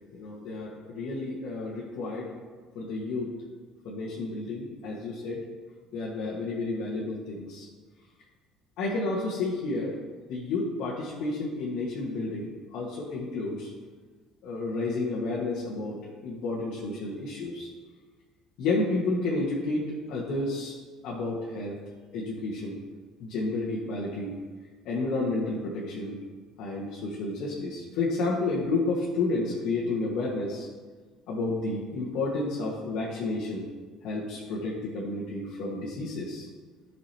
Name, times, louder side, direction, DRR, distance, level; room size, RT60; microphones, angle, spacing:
voice 1, 0.1-2.3 2.8-3.3 3.8-5.4 5.9-7.7 8.8-9.9 10.3-13.7 14.4-17.7 18.6-20.7 21.0-21.8 22.1-22.8 23.2-24.3 24.9-26.2 26.6-30.7 31.3-33.7 34.0-36.5, left 2 dB, 70° left, -6 dB, 1.6 m, -31 dB
11.5 x 6.2 x 2.9 m, 1.4 s
cardioid pair, 110°, 0 cm